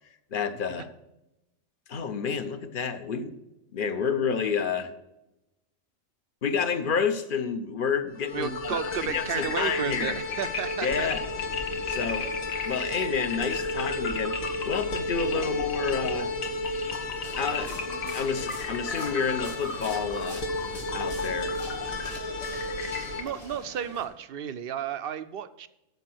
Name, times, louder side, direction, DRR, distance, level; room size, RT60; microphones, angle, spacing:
voice 1, 0.3-0.9 1.9-3.3 3.7-4.9 6.4-10.2 10.8-11.2 11.9-12.3 12.6-14.4 14.6-16.3 17.4-17.8 18.1-20.4 20.9-21.6, left 6 dB, 45° left, 10 dB, 0.9 m, -29 dB
sound 1, 8.2-23.2, left 2 dB, 80° left, 1.8 m, -32 dB
voice 2, 8.3-11.1 23.1-25.7, right 8 dB, 60° right, 12 dB, 0.7 m, -33 dB
sound 2, 17.2-24.1, left 1 dB, 60° left, 3.8 m, -45 dB
13.5 x 5.7 x 6.2 m, 0.93 s
omnidirectional pair, 1.4 m